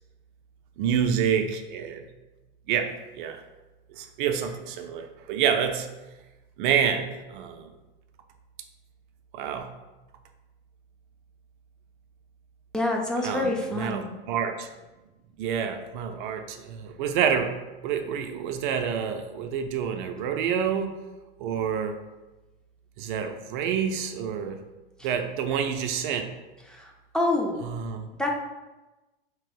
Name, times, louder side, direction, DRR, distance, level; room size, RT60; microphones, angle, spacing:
voice 1, 0.8-2.0 2.7-3.4 3.9-5.9 6.6-7.7 9.3-9.7 13.2-14.7 15.4-17.5 17.8-20.9 21.4-21.9 23.0-24.6 25.0-26.3 27.6-28.1, right 7 dB, 60° right, 6 dB, 0.5 m, -28 dB
voice 2, 12.7-14.1 26.7-27.6 28.2-28.3, left 2 dB, 5° left, 0 dB, 0.5 m, -27 dB
2.9 x 2.8 x 3.8 m, 1.1 s
hypercardioid pair, 100°, 29 cm